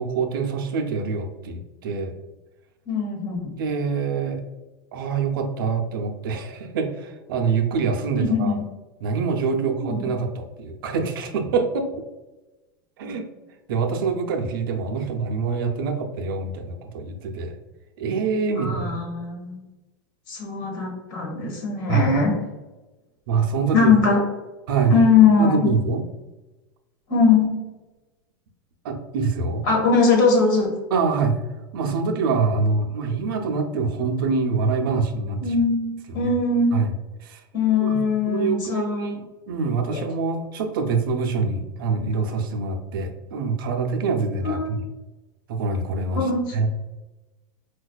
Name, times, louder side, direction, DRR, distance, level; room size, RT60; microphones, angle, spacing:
voice 1, 0.0-2.1 3.5-4.4 4.9-8.6 9.0-12.0 13.0-13.3 13.7-17.6 18.0-19.0 21.3-21.6 21.9-22.1 23.3-23.9 24.7-24.9 25.4-26.0 28.8-29.6 30.9-31.4 31.7-35.5 36.1-36.3 36.7-36.9 37.2-37.4 37.8-38.0 38.3-39.2 39.5-44.8 45.5-46.7, right 4 dB, 80° right, 4 dB, 0.5 m, -25 dB
voice 2, 2.8-3.5 8.2-8.7 9.6-10.1 18.6-19.6 20.3-22.4 23.7-24.2 24.9-25.7 27.1-27.6 29.6-30.8 35.4-36.7 37.5-39.2 39.9-40.0 44.4-44.8 46.1-46.6, left 4 dB, 70° left, 1 dB, 1.5 m, -21 dB
4.5 x 2.3 x 2.3 m, 1.1 s
supercardioid pair, 140°, 11 cm